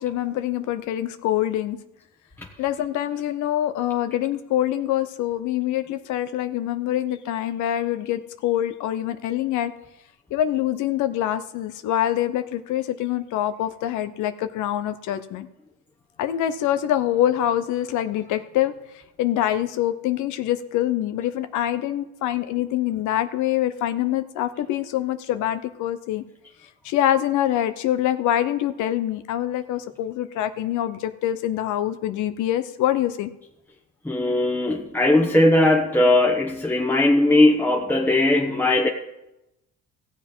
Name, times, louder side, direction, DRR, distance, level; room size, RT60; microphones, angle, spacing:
voice 1, 0.0-1.8 2.6-9.7 10.3-15.5 16.2-18.7 19.2-26.2 26.8-33.3, left 12 dB, 75° left, 11 dB, 0.7 m, -25 dB
voice 2, 34.0-38.9, left 1 dB, 5° left, 0 dB, 1.1 m, -19 dB
15.5 x 7.3 x 5.4 m, 0.91 s
cardioid pair, 100°, 30 cm